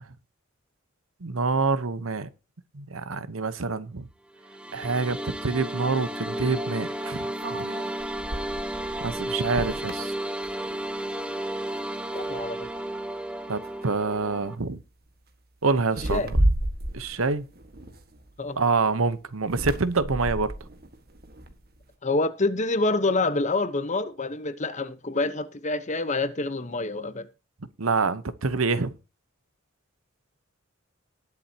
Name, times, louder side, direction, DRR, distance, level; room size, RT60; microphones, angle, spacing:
voice 1, 1.2-2.3 2.7-4.1 4.7-7.3 7.6-7.7 9.0-10.1 13.5-14.8 15.6-16.4 16.9-17.4 18.6-20.5 27.8-28.9, right 4 dB, 85° right, 1.0 m, -26 dB
sound 1, 4.4-14.6, right 1 dB, 5° right, 0.8 m, -33 dB
sound 2, 5.1-5.2 7.4-11.0 11.4-11.7 12.1-12.8 13.6-13.8 14.2-14.5 15.9-18.5 19.4-21.8, right 1 dB, 50° right, 1.6 m, -32 dB
voice 2, 12.1-12.7 16.1-16.3 18.4-18.6 22.0-27.3, left 2 dB, 35° left, 1.0 m, -27 dB
19.5 x 7.3 x 2.9 m
head